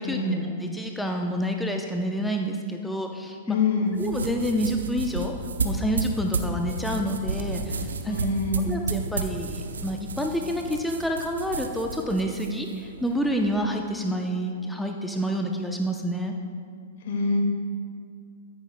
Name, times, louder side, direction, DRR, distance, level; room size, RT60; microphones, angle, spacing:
voice 1, 0.0-0.4 3.5-4.0 8.1-8.7 17.0-17.4, left 3 dB, 60° left, 2 dB, 1.8 m, -25 dB
voice 2, 0.6-3.6 4.0-5.3 5.6-8.2 8.7-16.3, equal, 5° left, 2 dB, 0.6 m, -28 dB
sound 1, 3.9-13.6, right 3 dB, 80° right, 0.7 m, -32 dB
13.5 x 9.3 x 2.2 m, 2.2 s
hypercardioid pair, 110°, 0 cm